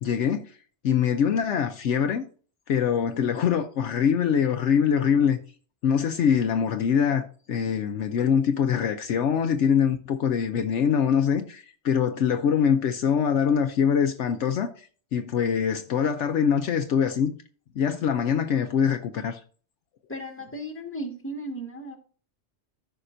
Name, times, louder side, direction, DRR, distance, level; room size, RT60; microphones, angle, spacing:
voice 1, 0.0-0.5 0.8-2.3 2.7-5.4 5.8-17.3 17.8-19.4, left 7 dB, 70° left, 0.9 m, -24 dB
voice 2, 20.1-22.0, right 1 dB, 10° left, 1.5 m, -35 dB
14.0 x 5.8 x 2.6 m
omnidirectional pair, 1.3 m